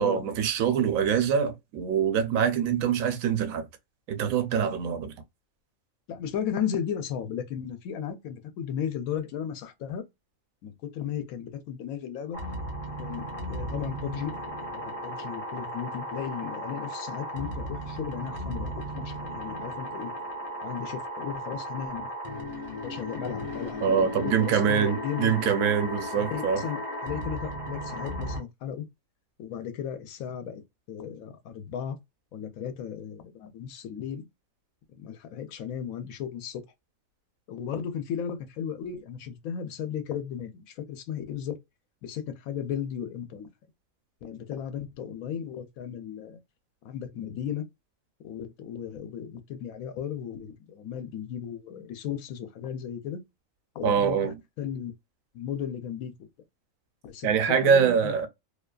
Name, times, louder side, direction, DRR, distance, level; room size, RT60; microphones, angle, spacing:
voice 1, 0.0-3.7 4.1-5.1 23.8-26.6 53.8-54.3 57.2-58.3, right 7 dB, 85° right, 1.0 m, -24 dB
voice 2, 6.1-10.0 10.6-12.4 13.0-14.3 14.7-20.1 20.6-22.1 22.8-25.5 26.2-28.9 29.4-30.6 30.9-32.0 32.3-34.3 34.9-36.6 37.5-41.6 42.0-43.5 44.2-46.4 46.8-47.7 48.2-53.2 53.7-54.9 55.3-56.1 57.0-58.3, left 8 dB, 90° left, 1.1 m, -35 dB
sound 1, 12.3-28.4, equal, 25° left, 1.1 m, -36 dB
2.7 x 2.3 x 2.2 m
omnidirectional pair, 1.4 m